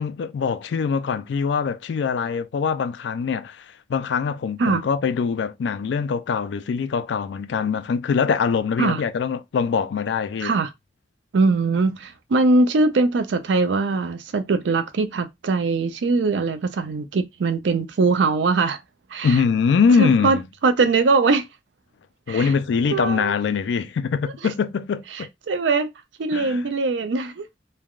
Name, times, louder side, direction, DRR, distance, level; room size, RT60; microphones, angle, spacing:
voice 1, 0.0-10.5 19.2-20.4 22.3-25.3 26.3-26.6, left 6 dB, 75° left, 0.3 m, -23 dB
voice 2, 11.3-18.8 19.1-19.4 20.0-20.4 20.6-21.5 22.3-22.5 22.9-23.3 25.1-25.9 26.2-27.5, right 3 dB, 85° right, 0.4 m, -21 dB
3.2 x 2.2 x 2.3 m
head